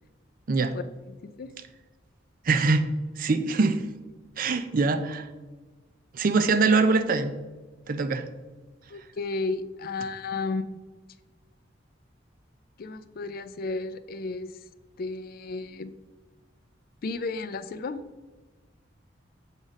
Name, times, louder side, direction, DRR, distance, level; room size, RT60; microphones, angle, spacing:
voice 1, 0.7-1.5 8.9-10.8 12.8-14.5 15.0-15.9 17.0-18.0, left 3 dB, 50° left, 13 dB, 0.4 m, -33 dB
voice 2, 2.5-2.8 3.2-3.8 4.4-5.2 6.1-7.3 7.9-8.2, right 3 dB, 45° right, 10 dB, 0.5 m, -23 dB
7.2 x 4.0 x 5.1 m, 1.3 s
head